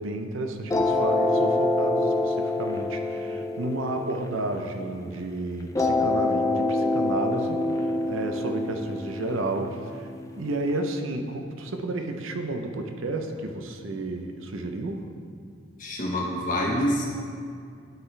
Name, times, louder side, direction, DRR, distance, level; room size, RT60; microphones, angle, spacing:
voice 1, 0.0-10.1 10.4-15.1, right 2 dB, 75° right, 5 dB, 0.7 m, -32 dB
sound 1, 0.7-5.1 5.7-10.7, left 2 dB, 15° left, 0.4 m, -26 dB
voice 2, 15.8-17.1, equal, 40° left, -2 dB, 1.2 m, -26 dB
12.0 x 4.6 x 3.3 m, 2.3 s
head